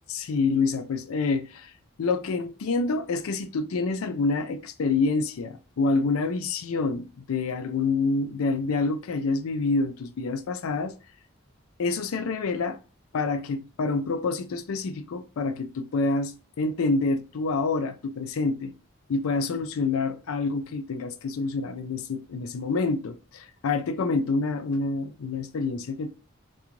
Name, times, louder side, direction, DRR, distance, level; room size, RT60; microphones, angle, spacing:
voice 1, 0.1-1.7 2.0-10.9 11.8-12.8 13.1-18.7 19.1-26.1, left 3 dB, 90° left, 0.4 m, -27 dB
3.7 x 2.3 x 2.9 m
head